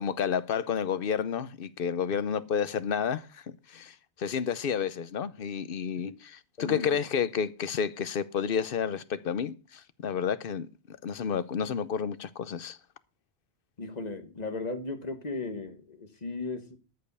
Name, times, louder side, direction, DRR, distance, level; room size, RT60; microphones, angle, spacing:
voice 1, 0.0-3.4 3.7-6.1 6.6-12.8, left 7 dB, 60° left, 0.9 m, -30 dB
voice 2, 6.6-7.0 13.8-16.8, left 3 dB, 40° left, 1.5 m, -36 dB
13.5 x 5.3 x 6.8 m
omnidirectional pair, 1.1 m